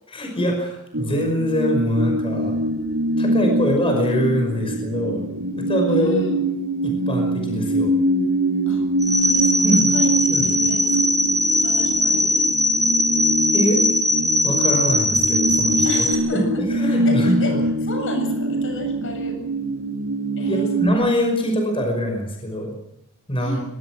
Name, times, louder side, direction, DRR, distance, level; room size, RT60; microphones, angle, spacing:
voice 1, 0.1-2.6 3.2-5.2 5.6-6.2 6.8-7.9 9.6-9.9 10.3-10.5 13.5-13.8 14.4-16.1 16.3-17.6 20.5-22.8 23.3-23.6, equal, 25° left, 3 dB, 5.6 m, -23 dB
sound 1, 0.9-20.9, right 1 dB, 75° right, 1.8 m, -24 dB
voice 2, 5.9-6.4 8.7-11.0 11.5-12.5 15.8-16.5 16.8-19.4 20.4-20.7 23.4-23.6, equal, 65° left, 5 dB, 7.7 m, -32 dB
sound 2, 9.0-16.1, left 1 dB, ahead, 2.0 m, -20 dB
23.5 x 22.0 x 6.2 m, 0.82 s
head